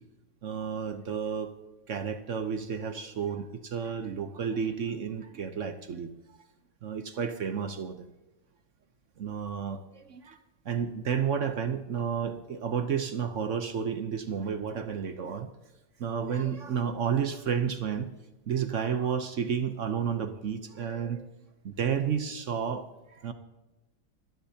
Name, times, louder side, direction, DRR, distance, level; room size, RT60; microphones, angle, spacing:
voice 1, 0.4-1.5 1.9-6.1 6.8-8.0 9.2-9.8 10.7-15.5 16.0-18.0 18.5-21.2 21.8-22.8 23.2-23.3, right 7 dB, 55° right, 9 dB, 0.8 m, -31 dB
26.5 x 10.0 x 2.8 m, 1.1 s
omnidirectional pair, 2.1 m